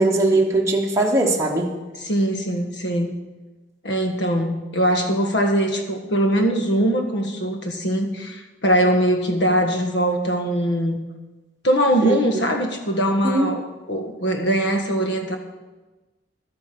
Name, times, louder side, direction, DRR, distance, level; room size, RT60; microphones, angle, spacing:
voice 1, 0.0-1.7 12.0-12.2 13.2-13.5, right 2 dB, 15° right, -1 dB, 1.1 m, -20 dB
voice 2, 2.0-3.1 3.8-11.0 11.6-15.4, right 1 dB, 70° left, 4 dB, 1.5 m, -21 dB
12.5 x 8.7 x 6.0 m, 1.2 s
head